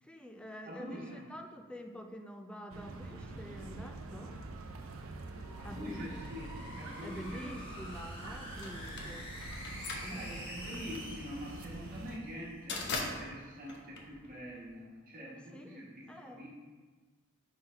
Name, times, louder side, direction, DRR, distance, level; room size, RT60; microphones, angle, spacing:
voice 1, 0.0-4.4 5.6-6.2 7.0-9.3 10.0-10.3 15.5-15.8 16.1-16.4, equal, 5° left, 4 dB, 0.4 m, -47 dB
voice 2, 0.6-1.2 5.6-7.6 9.6-16.5, equal, 45° right, -5 dB, 1.2 m, -45 dB
sound 1, 2.7-12.2, right 2 dB, 70° right, 0.5 m, -46 dB
sound 2, 5.2-12.6, equal, 25° left, 1.2 m, -48 dB
sound 3, 8.6-14.8, left 3 dB, 55° left, 0.8 m, -41 dB
5.5 x 3.9 x 4.4 m, 1.4 s
head